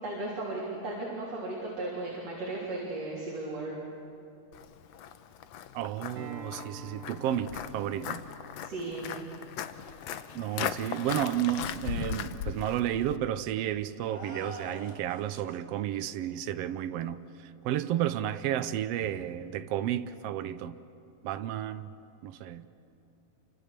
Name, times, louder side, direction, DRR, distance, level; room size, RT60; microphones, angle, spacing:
voice 1, 0.0-3.7 8.6-9.1, right 2 dB, 50° right, 4.6 m, -36 dB
Walk footsteps, 4.5-13.2, left 9 dB, 70° left, 1.7 m, -38 dB
voice 2, 5.7-8.2 10.3-20.8 21.2-21.9 22.2-22.7, right 11 dB, 85° right, 1.4 m, -32 dB
Acoustic guitar, 6.2-11.4, equal, 70° right, 3.5 m, -49 dB
sound 1, 14.0-15.6, left 1 dB, 20° left, 3.2 m, -44 dB
29.0 x 25.0 x 6.8 m
omnidirectional pair, 3.7 m